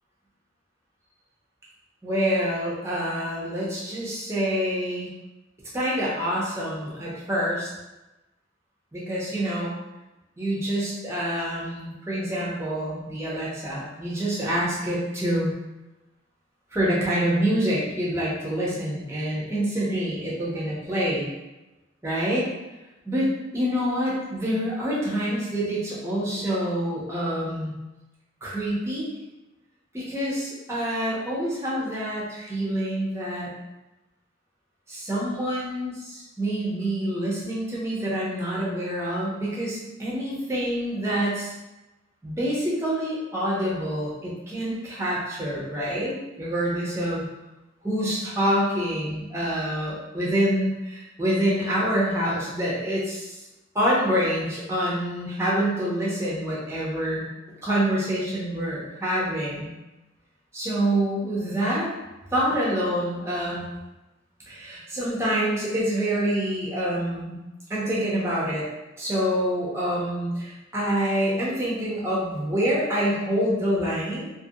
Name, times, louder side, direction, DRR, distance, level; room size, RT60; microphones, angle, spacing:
voice 1, 2.0-5.1 5.7-7.7 8.9-9.7 10.4-15.5 16.7-21.3 22.0-22.5 23.0-27.7 28.4-29.1 29.9-33.5 34.9-41.5 42.2-47.2 47.8-53.4 53.7-57.2 57.6-59.7 60.5-61.9 62.3-63.6 64.5-67.3 67.7-68.7 69.0-74.3, equal, 15° right, -6 dB, 0.7 m, -26 dB
2.7 x 2.6 x 2.7 m, 1.0 s
head